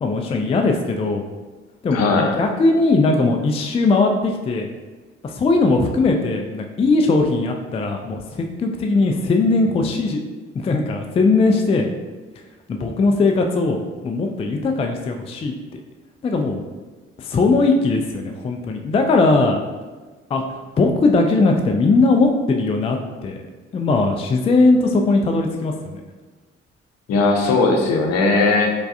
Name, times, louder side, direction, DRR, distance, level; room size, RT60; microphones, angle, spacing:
voice 1, 0.0-1.2 1.8-2.0 2.4-4.7 5.2-10.2 10.6-11.9 12.7-15.5 16.2-16.6 17.2-19.6 20.3-20.4 20.8-23.4 23.7-26.0, left 3 dB, 20° left, 3 dB, 0.3 m, -19 dB
voice 2, 1.9-2.3 27.1-28.7, left 3 dB, 55° left, 2 dB, 0.7 m, -18 dB
4.5 x 2.3 x 2.4 m, 1.3 s
figure-of-eight pair, 40°, 31 cm